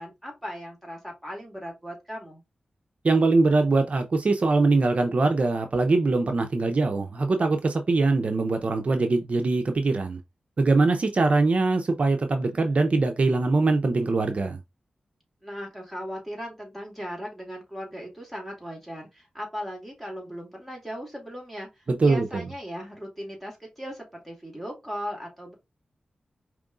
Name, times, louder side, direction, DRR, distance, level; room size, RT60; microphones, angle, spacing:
voice 1, 0.0-2.4 15.4-25.5, equal, 5° left, 2.4 m, -38 dB
voice 2, 3.0-10.2 10.6-14.6 22.0-22.4, right 3 dB, 55° right, 0.6 m, -22 dB
5.1 x 3.0 x 2.5 m
wide cardioid pair, 75°, 3 cm